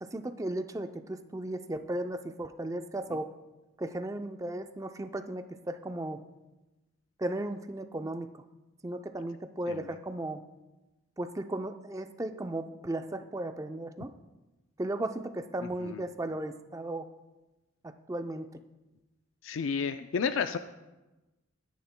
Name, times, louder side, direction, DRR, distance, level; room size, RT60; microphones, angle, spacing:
voice 1, 0.0-3.3 3.8-6.2 7.2-8.3 8.8-10.4 11.2-14.1 14.8-17.1 17.8-18.5, right 1 dB, 15° right, 8 dB, 0.5 m, -35 dB
voice 2, 19.4-20.6, left 6 dB, 75° left, 9 dB, 0.4 m, -31 dB
21.5 x 10.5 x 2.2 m, 1.1 s
head